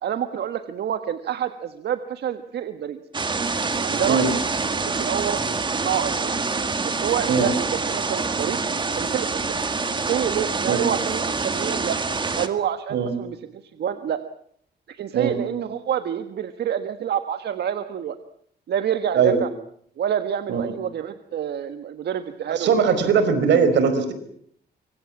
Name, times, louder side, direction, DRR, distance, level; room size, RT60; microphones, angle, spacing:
voice 1, 0.0-3.0 3.8-4.4 4.7-6.3 6.8-8.6 9.0-9.6 10.1-12.0 12.4-13.4 13.8-14.2 14.9-18.2 18.7-19.5 20.0-22.7, right 9 dB, 70° right, 9 dB, 1.6 m, -27 dB
sound 1, 3.1-12.5, right 4 dB, 25° right, 2.2 m, -26 dB
voice 2, 22.5-24.1, right 6 dB, 90° right, 11 dB, 5.2 m, -20 dB
25.5 x 25.5 x 7.3 m, 0.65 s
wide cardioid pair, 145°, 18 cm